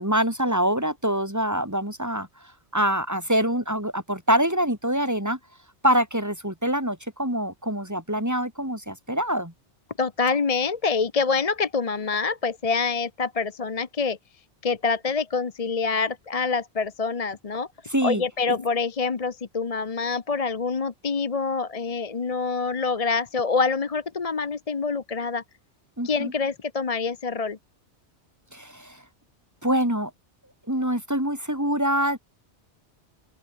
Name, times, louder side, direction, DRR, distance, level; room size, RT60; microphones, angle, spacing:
voice 1, 0.0-2.3 2.7-5.4 5.8-9.5 17.9-18.6 26.0-26.3 28.5-29.0 29.6-30.1 30.7-32.2, equal, 15° right, 5.4 m, -25 dB
voice 2, 10.0-14.2 14.6-17.7 18.0-25.4 26.0-27.6, left 4 dB, 35° left, 0.8 m, -26 dB
open air
omnidirectional pair, 1.2 m